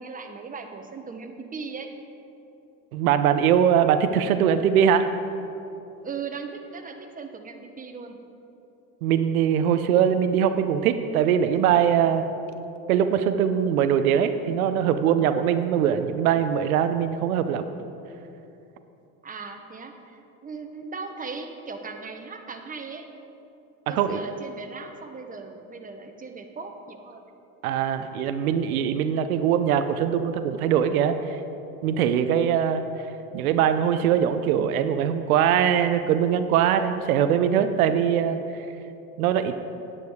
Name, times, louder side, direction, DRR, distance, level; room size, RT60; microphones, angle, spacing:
voice 1, 0.0-1.9 6.0-8.2 19.2-23.1 23.9-27.2, right 4 dB, 20° right, 5 dB, 1.1 m, -38 dB
voice 2, 2.9-5.1 9.0-12.3 12.9-17.6 23.9-24.2 27.6-31.2 31.8-32.9 33.3-38.4 39.2-39.5, right 8 dB, 85° right, 9 dB, 0.6 m, -22 dB
9.6 x 8.8 x 4.8 m, 2.8 s
hypercardioid pair, 85°, 42 cm